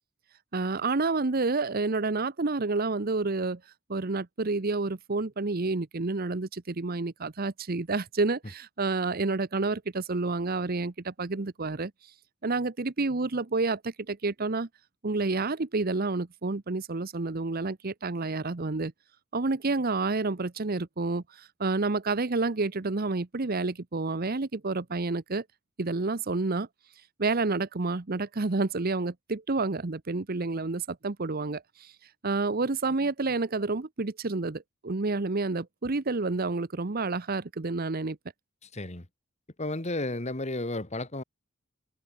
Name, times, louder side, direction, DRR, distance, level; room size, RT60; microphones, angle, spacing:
voice 1, 0.5-3.6 3.9-11.9 12.4-14.7 15.0-18.9 19.3-25.4 25.8-26.7 27.2-31.9 32.2-38.2, right 3 dB, 45° right, 0.9 m, -29 dB
voice 2, 38.7-39.1 39.6-41.2, left 2 dB, 35° left, 2.0 m, -32 dB
head